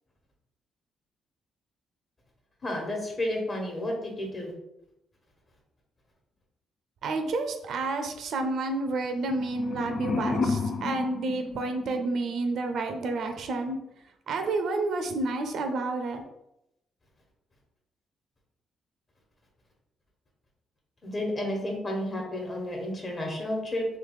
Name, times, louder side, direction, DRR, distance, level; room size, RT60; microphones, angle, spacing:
voice 1, 2.6-4.5 21.0-23.8, left 1 dB, 35° left, 1 dB, 1.3 m, -31 dB
voice 2, 7.0-13.8 14.3-16.2, right 3 dB, 70° right, 6 dB, 0.6 m, -30 dB
sound 1, 9.1-12.3, left 4 dB, 50° left, 0.4 m, -31 dB
3.3 x 2.9 x 4.0 m, 0.84 s
cardioid pair, 90°, 0 cm